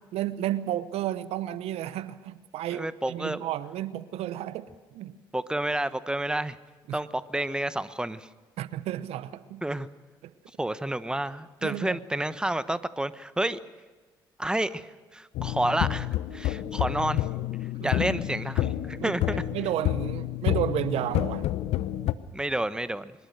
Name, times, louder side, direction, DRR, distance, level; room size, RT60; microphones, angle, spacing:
voice 1, 0.1-5.1 6.9-7.0 8.6-9.6 11.6-12.0 17.8-17.9 19.0-21.5, right 12 dB, 65° right, 15 dB, 0.9 m, -32 dB
voice 2, 2.7-3.4 5.3-6.6 6.9-8.3 9.6-9.9 10.6-13.6 14.4-17.3 17.8-19.4 22.3-23.1, right 1 dB, 5° right, 14 dB, 1.2 m, -30 dB
sound 1, 15.3-22.1, left 14 dB, 65° left, 0.9 m, -29 dB
24.0 x 21.0 x 6.7 m, 1.3 s
hypercardioid pair, 50°, 11 cm